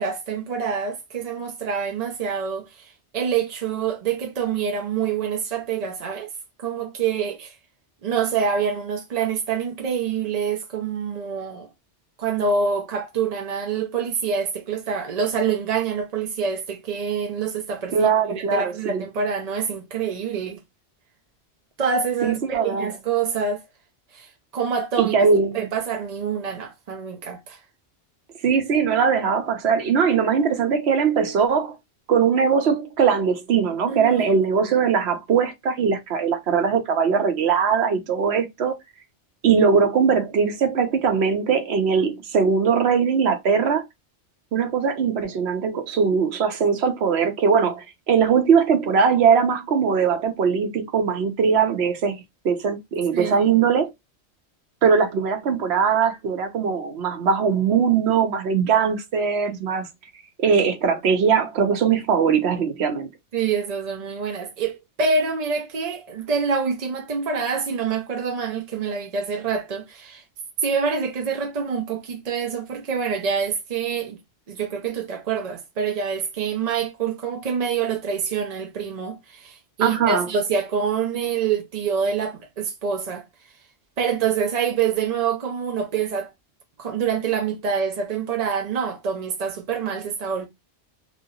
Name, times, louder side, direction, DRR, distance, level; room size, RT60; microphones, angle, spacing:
voice 1, 0.0-6.3 6.6-7.6 8.0-11.7 12.2-20.6 21.8-23.6 24.1-25.1 25.5-27.6 33.9-34.2 53.1-53.5 63.3-70.2 70.6-74.2 74.5-83.2 84.0-86.3 86.8-90.5, right 6 dB, 50° right, 0.5 m, -26 dB
voice 2, 17.9-19.0 22.2-22.9 25.0-25.7 28.4-31.8 32.1-38.7 39.4-43.8 44.5-53.9 54.8-59.9 60.4-63.1 79.8-80.3, right 6 dB, 70° right, 1.0 m, -20 dB
3.0 x 2.8 x 2.7 m
omnidirectional pair, 1.2 m